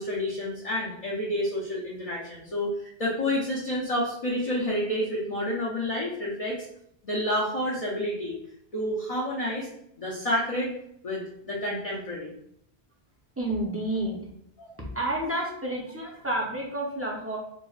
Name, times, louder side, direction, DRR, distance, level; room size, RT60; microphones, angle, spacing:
voice 1, 0.0-6.7 7.0-8.4 8.7-9.7 10.0-10.7 11.0-12.4 14.6-14.7, left 1 dB, 45° left, -4 dB, 0.6 m, -29 dB
voice 2, 13.4-14.2 14.9-17.4, right 1 dB, 20° right, -2 dB, 0.5 m, -30 dB
4.6 x 2.1 x 2.4 m, 0.74 s
omnidirectional pair, 1.1 m